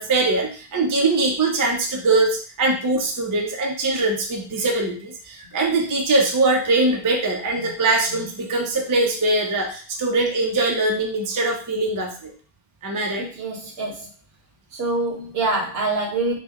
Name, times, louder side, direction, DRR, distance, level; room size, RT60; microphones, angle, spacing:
voice 1, 0.0-12.3 12.8-13.3, right 2 dB, 30° right, 1 dB, 0.4 m, -22 dB
voice 2, 13.2-14.1 14.7-16.4, right 2 dB, 70° right, 0 dB, 1.1 m, -25 dB
3.1 x 2.1 x 3.4 m, 0.39 s
omnidirectional pair, 1.1 m